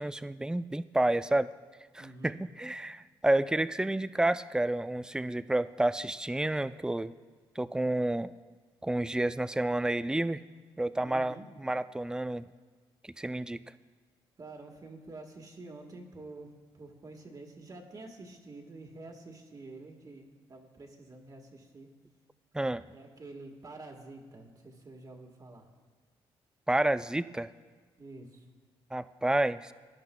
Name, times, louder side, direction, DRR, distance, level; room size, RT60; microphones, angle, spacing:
voice 1, 0.0-1.5 1.9-7.1 7.6-8.3 8.8-10.4 10.8-12.5 13.0-13.6 22.5-22.8 26.7-27.5 28.9-29.7, right 1 dB, 5° right, 14 dB, 0.3 m, -30 dB
voice 2, 2.0-2.4 11.0-11.5 14.4-21.9 22.9-25.7 28.0-28.5, right 2 dB, 40° right, 2 dB, 1.4 m, -48 dB
19.0 x 10.5 x 2.2 m, 1.5 s
cardioid pair, 75°, 10 cm